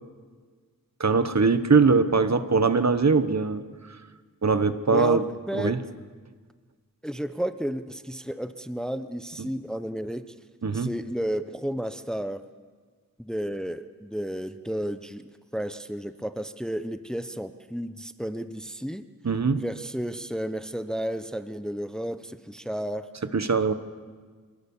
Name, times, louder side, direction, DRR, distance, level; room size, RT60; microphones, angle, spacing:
voice 1, 1.0-3.6 4.4-5.2 5.5-5.8 10.6-10.9 19.2-19.6 23.3-23.7, right 4 dB, 55° right, 11 dB, 1.2 m, -21 dB
voice 2, 4.9-5.8 7.0-10.2 10.7-12.4 13.2-19.1 19.6-23.1, equal, ahead, 10 dB, 0.8 m, -32 dB
26.0 x 18.5 x 7.2 m, 1.5 s
wide cardioid pair, 80°, 33 cm